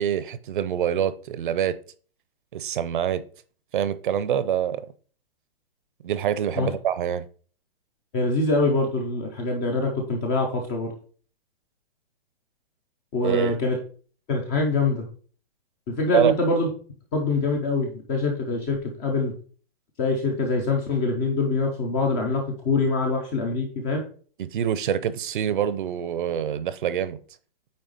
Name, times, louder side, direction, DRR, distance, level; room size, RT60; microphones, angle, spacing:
voice 1, 0.0-1.8 2.5-3.2 3.7-4.8 6.0-7.2 13.2-13.6 16.1-16.3 24.4-27.2, right 9 dB, 55° right, 0.7 m, -25 dB
voice 2, 8.1-10.9 13.1-13.8 14.3-15.1 15.9-16.7 17.1-19.3 20.0-24.0, left 3 dB, 10° left, 0.4 m, -24 dB
8.8 x 3.3 x 5.1 m
hypercardioid pair, 155°, 31 cm